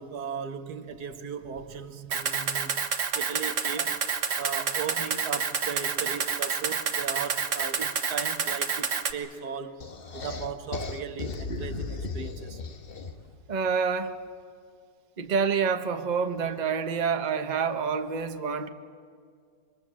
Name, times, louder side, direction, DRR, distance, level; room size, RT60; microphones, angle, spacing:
voice 1, 0.0-4.0 4.4-9.8 10.1-12.6, right 6 dB, 75° right, 10 dB, 1.6 m, -37 dB
Camera, 2.1-9.1, right 6 dB, 50° right, 1.5 m, -28 dB
sound 1, 9.8-13.3, left 3 dB, 40° left, 1.3 m, -36 dB
voice 2, 13.5-14.1 15.2-18.7, right 6 dB, 30° right, 7 dB, 1.1 m, -27 dB
26.0 x 23.5 x 7.4 m, 2.2 s
omnidirectional pair, 1.7 m